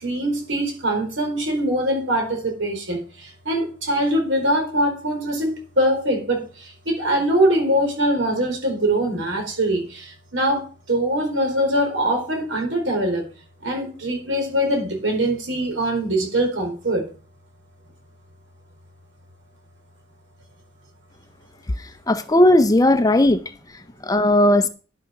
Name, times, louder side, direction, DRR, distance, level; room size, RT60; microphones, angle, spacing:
voice 1, 0.0-3.0 3.5-6.4 6.9-13.2 13.6-17.0, right 1 dB, 65° right, 4.4 m, -22 dB
voice 2, 21.8-23.4 24.0-24.7, left 1 dB, 20° left, 0.5 m, -16 dB
11.0 x 6.7 x 5.9 m
head